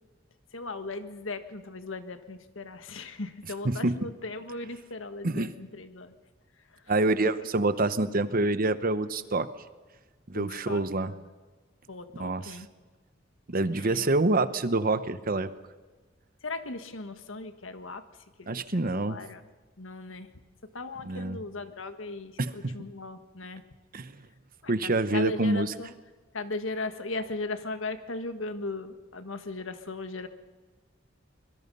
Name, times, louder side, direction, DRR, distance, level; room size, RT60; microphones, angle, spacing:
voice 1, 0.5-6.1 6.7-6.8 7.2-7.5 10.3-11.3 11.9-12.7 13.7-14.1 16.4-19.4 19.8-20.3 20.7-23.6 24.6-25.9 26.3-30.3, left 3 dB, 80° left, 9 dB, 1.6 m, -38 dB
voice 2, 3.6-3.9 5.2-5.5 6.9-9.5 10.3-11.1 12.2-12.6 13.5-15.5 18.5-19.2 21.1-21.4 22.4-22.7 23.9-24.1 24.7-25.7, right 2 dB, 45° right, 13 dB, 1.0 m, -26 dB
25.0 x 22.5 x 5.5 m, 1.3 s
head